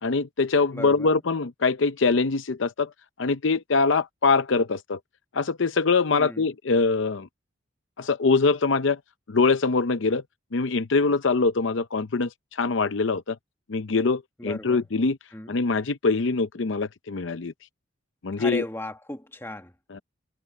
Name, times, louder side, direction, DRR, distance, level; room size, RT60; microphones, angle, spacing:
voice 1, 0.0-2.9 3.2-5.0 5.3-7.3 8.0-9.0 9.3-10.2 10.5-13.4 13.7-15.2 15.5-17.5 18.2-18.6 19.9-20.0, left 4 dB, 70° left, 0.6 m, -23 dB
voice 2, 0.7-1.2 6.2-6.5 14.4-14.8 15.3-15.6 18.4-19.7, left 1 dB, 10° left, 1.6 m, -36 dB
head